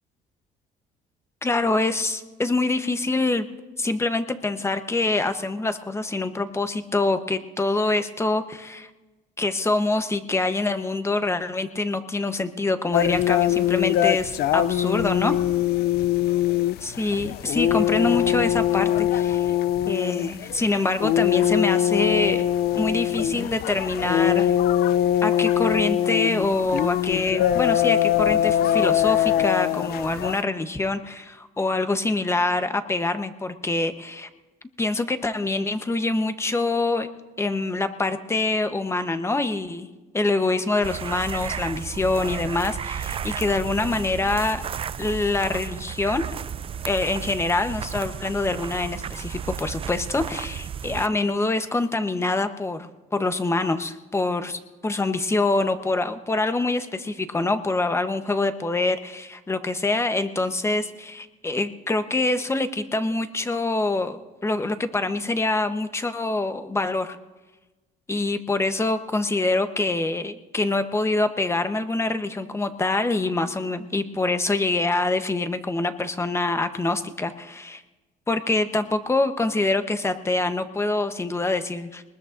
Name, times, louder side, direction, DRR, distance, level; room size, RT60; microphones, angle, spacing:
voice 1, 1.4-3.5 3.8-8.9 9.4-15.3 16.8-19.5 19.9-22.5 22.7-24.5 25.2-34.3 34.8-37.1 37.4-39.9 40.1-44.6 45.0-46.3 46.8-67.2 68.1-77.8 78.3-82.0, left 2 dB, 15° left, 9 dB, 0.9 m, -25 dB
sound 1, 12.9-30.4, left 11 dB, 70° left, 0.5 m, -22 dB
sound 2, 40.8-51.1, right 8 dB, 35° right, 0.4 m, -33 dB
22.0 x 20.0 x 2.6 m, 1.2 s
cardioid pair, 110°, 17 cm